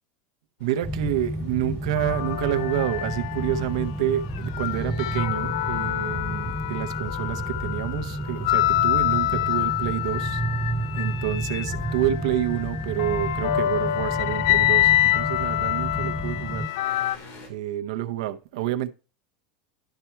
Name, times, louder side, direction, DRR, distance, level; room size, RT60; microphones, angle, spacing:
sound 1, 0.6-17.5, left 3 dB, 50° left, 2.8 m, -50 dB
voice 1, 0.6-10.4 10.9-16.7 17.5-18.9, right 12 dB, 75° right, 0.7 m, -28 dB
sound 2, 0.8-16.7, right 1 dB, ahead, 0.5 m, -31 dB
sound 3, 1.9-3.8 4.3-17.2, left 14 dB, 75° left, 0.5 m, -26 dB
11.5 x 4.5 x 4.4 m
supercardioid pair, 175°, 3 cm